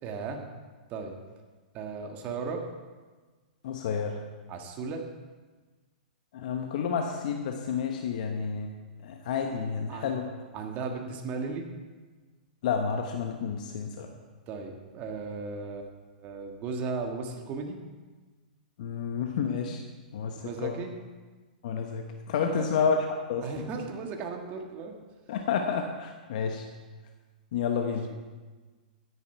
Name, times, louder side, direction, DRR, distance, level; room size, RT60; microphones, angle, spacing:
voice 1, 0.0-0.4 0.9-1.1 1.7-2.7 4.5-5.1 9.9-10.1 10.5-11.7 14.5-17.8 20.4-20.9 22.5-22.8 23.4-24.9 27.8-27.9, right 4 dB, 35° right, 3 dB, 1.8 m, -36 dB
voice 2, 3.6-4.2 6.3-8.7 9.0-10.3 12.6-14.1 18.8-19.8 20.1-20.8 21.6-23.0 23.3-23.4 25.3-26.7 27.5-28.1, left 6 dB, 60° left, 3 dB, 1.1 m, -30 dB
13.0 x 10.0 x 4.6 m, 1.3 s
hypercardioid pair, 120°, 5 cm